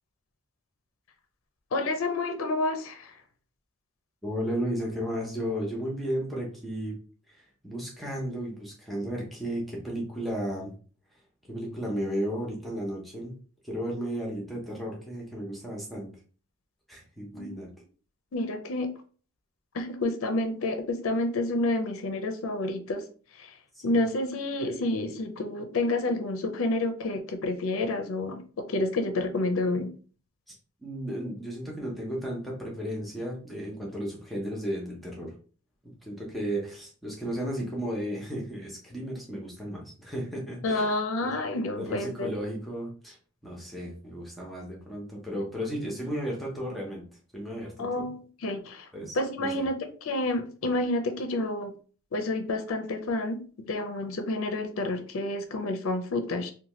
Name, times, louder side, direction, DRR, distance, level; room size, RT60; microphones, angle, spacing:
voice 1, 1.7-3.1 17.4-17.5 18.3-18.9 19.7-23.0 23.4-23.5 23.8-29.9 40.6-42.3 47.8-48.9 49.1-51.7 52.1-56.5, left 2 dB, 65° left, 7 dB, 0.4 m, -29 dB
voice 2, 4.2-7.0 7.3-10.7 11.5-13.3 13.6-16.1 16.9-17.7 23.7-24.0 30.8-35.4 36.0-41.0 41.2-41.5 41.8-43.2 43.4-47.1 47.3-48.1 48.9-49.7, equal, ahead, -3 dB, 0.6 m, -34 dB
2.8 x 2.2 x 3.0 m, 0.40 s
head